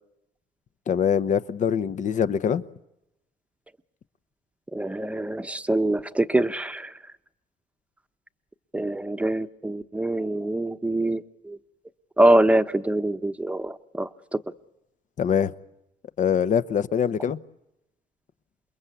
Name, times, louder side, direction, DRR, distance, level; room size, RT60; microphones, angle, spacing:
voice 1, 0.9-2.6 15.2-15.5 16.2-17.4, left 8 dB, 45° left, 0.9 m, -23 dB
voice 2, 4.7-6.9 8.7-11.6 12.2-14.4, right 1 dB, 5° right, 1.0 m, -24 dB
28.5 x 22.0 x 8.3 m
cardioid pair, 110°, 17 cm